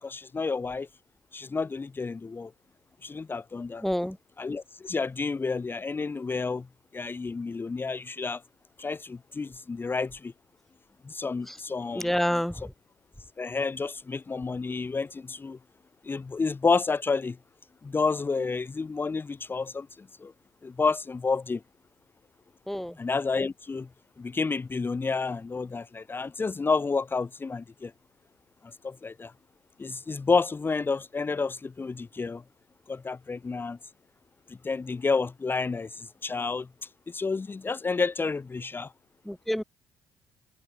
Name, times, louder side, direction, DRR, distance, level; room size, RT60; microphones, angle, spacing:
voice 1, 0.0-0.9 1.3-2.5 3.0-3.8 4.4-6.7 6.9-8.4 8.8-10.3 11.0-12.1 13.4-15.6 16.0-17.4 17.8-20.3 20.6-21.6 23.0-23.9 24.2-27.9 28.6-29.3 29.8-32.4 32.9-33.8 34.5-38.9, left 4 dB, 25° left, 0.9 m, -30 dB
voice 2, 3.8-4.2 11.5-11.6 11.9-12.7 22.7-23.0 39.2-39.6, equal, 5° left, 2.2 m, -28 dB
hypercardioid pair, 55°, 8 cm